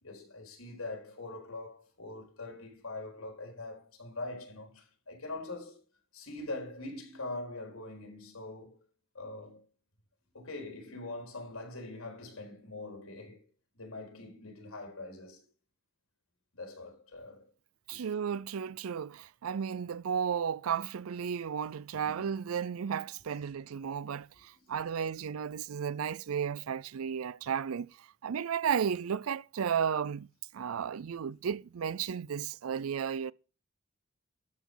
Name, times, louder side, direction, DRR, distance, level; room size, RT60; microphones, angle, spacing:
voice 1, 0.0-5.8 6.1-8.8 9.1-9.6 10.3-13.4 13.7-15.4 16.5-17.5 17.9-18.1 22.1-22.3 23.8-23.9 24.5-24.6, left 2 dB, 80° left, 4.2 m, -43 dB
voice 2, 17.9-30.3 30.5-33.3, right 7 dB, 85° right, 0.4 m, -34 dB
12.5 x 5.9 x 5.5 m
head